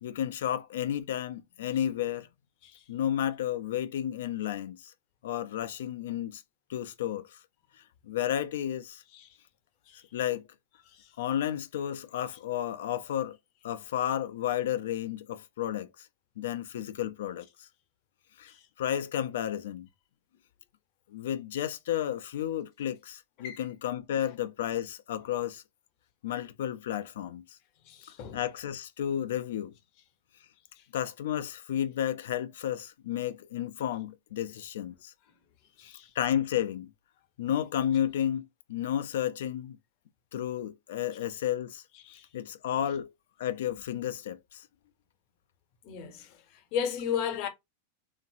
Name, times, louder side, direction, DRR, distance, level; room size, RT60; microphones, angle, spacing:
voice 1, 0.0-2.3 2.9-4.9 5.2-6.4 6.7-7.4 8.1-9.0 10.1-10.5 11.2-13.4 13.6-16.1 16.4-17.7 18.4-18.5 18.8-19.9 21.1-25.6 26.2-27.6 28.3-29.7 30.9-35.1 35.8-36.9 37.4-39.8 40.3-41.8 42.3-43.1 43.4-44.7, left 10 dB, 75° left, 0.4 m, -32 dB
voice 2, 27.9-28.4 30.8-30.9 35.8-36.1 42.0-42.3 45.8-47.5, left 8 dB, 50° left, 0.7 m, -36 dB
2.9 x 2.5 x 2.6 m
hypercardioid pair, 120°, 0 cm